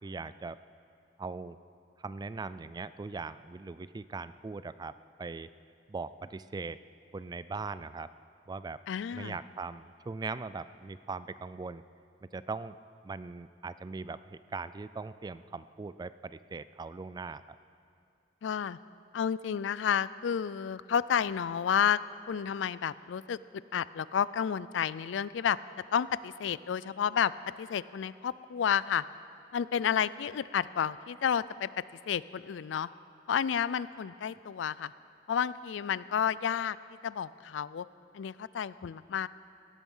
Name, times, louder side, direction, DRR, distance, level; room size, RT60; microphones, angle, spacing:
voice 1, 0.0-0.6 1.2-1.6 2.0-4.9 5.2-5.5 5.9-6.8 7.1-8.1 8.5-8.8 9.1-11.8 12.3-12.8 13.0-17.4, right 4 dB, 20° right, 15 dB, 0.3 m, -40 dB
voice 2, 8.9-9.4 18.4-18.8 19.1-22.0 22.3-23.4 23.7-25.6 25.9-27.3 27.6-29.0 29.5-31.7 32.1-32.9 33.3-34.9 35.3-36.8 37.0-37.9 38.1-39.3, left 8 dB, 80° left, 18 dB, 0.4 m, -31 dB
16.5 x 13.5 x 5.5 m, 2.5 s
head